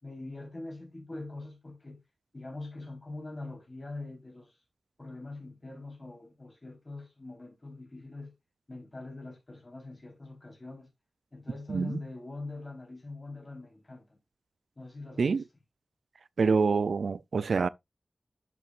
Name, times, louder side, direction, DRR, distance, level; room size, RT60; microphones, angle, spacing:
voice 1, 0.0-2.0 2.3-4.6 5.0-8.3 8.7-10.9 11.3-14.2 14.8-15.4, left 2 dB, 35° left, 3.8 m, -43 dB
voice 2, 11.7-12.0 15.2-15.4 16.4-17.7, right 4 dB, 90° right, 0.3 m, -26 dB
10.5 x 6.1 x 2.4 m
wide cardioid pair, 70°, 0 cm